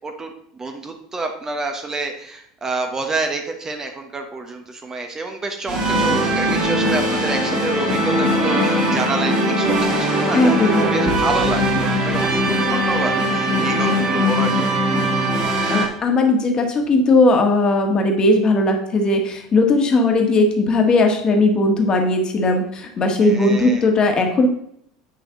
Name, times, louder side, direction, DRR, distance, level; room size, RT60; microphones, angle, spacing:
voice 1, 0.0-0.3 0.6-15.0 19.9-20.0 23.2-23.9, right 3 dB, 20° right, 4 dB, 1.0 m, -28 dB
sound 1, 5.7-15.9, equal, 40° right, 2.9 m, -20 dB
voice 2, 10.3-11.1 15.7-24.5, left 2 dB, 30° left, 3 dB, 1.5 m, -17 dB
9.0 x 5.1 x 3.8 m, 0.70 s
figure-of-eight pair, 75°, 3 cm